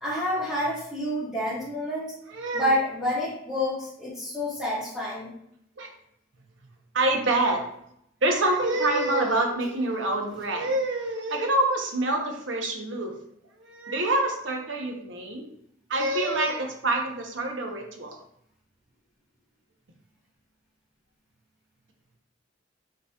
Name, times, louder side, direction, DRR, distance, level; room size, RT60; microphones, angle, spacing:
voice 1, 0.0-2.1 2.5-5.3, left 1 dB, 5° right, -9 dB, 1.5 m, -28 dB
voice 2, 2.3-2.7 5.8-5.9 6.9-7.6 8.2-13.1 13.6-15.5 15.9-18.2, right 2 dB, 75° right, 2 dB, 1.0 m, -26 dB
5.5 x 4.0 x 2.4 m, 0.73 s
head